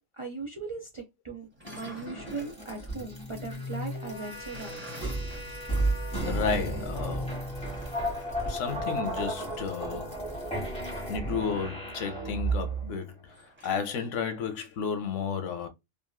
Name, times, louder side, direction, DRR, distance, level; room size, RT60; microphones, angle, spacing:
voice 1, 0.1-4.8, right 4 dB, 40° right, 0.4 m, -39 dB
sound 1, 1.5-2.6 4.1-6.4 6.6-6.7 7.5-8.4 10.9-11.9 13.3-13.9, equal, 10° right, 0.8 m, -49 dB
sound 2, 1.6-12.9, right 1 dB, 5° left, 1.3 m, -33 dB
sound 3, 4.3-12.1, equal, 50° left, 0.7 m, -49 dB
voice 2, 6.2-7.4 8.5-10.1 11.1-13.3 13.6-15.7, left 6 dB, 85° left, 1.0 m, -32 dB
2.9 x 2.6 x 2.2 m
omnidirectional pair, 1.2 m